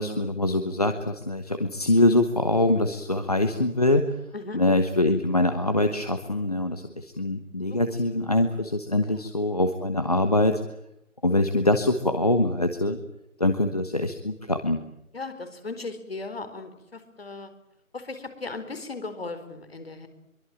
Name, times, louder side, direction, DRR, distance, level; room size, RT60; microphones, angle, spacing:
voice 1, 0.0-4.2 4.5-10.6 11.2-13.0 13.4-14.8, left 1 dB, 25° left, 7 dB, 1.2 m, -24 dB
voice 2, 15.1-17.5 17.9-20.1, left 3 dB, 45° left, 9 dB, 4.5 m, -37 dB
26.0 x 23.5 x 9.0 m, 0.82 s
figure-of-eight pair, 165°, 43 cm